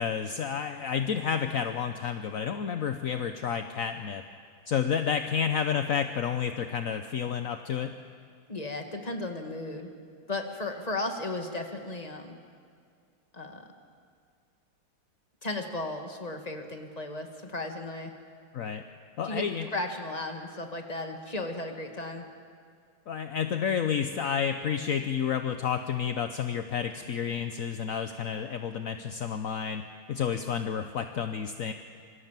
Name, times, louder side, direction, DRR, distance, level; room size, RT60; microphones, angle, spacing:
voice 1, 0.0-4.2 4.7-7.9 18.5-18.8 19.2-19.7 23.1-29.8 30.1-31.7, left 7 dB, 55° left, 7 dB, 1.0 m, -30 dB
voice 2, 8.5-9.9 10.3-12.4 13.3-13.6 15.4-18.1 19.2-22.3, left 2 dB, 20° left, 4 dB, 2.1 m, -35 dB
26.5 x 24.5 x 7.5 m, 2.2 s
omnidirectional pair, 2.3 m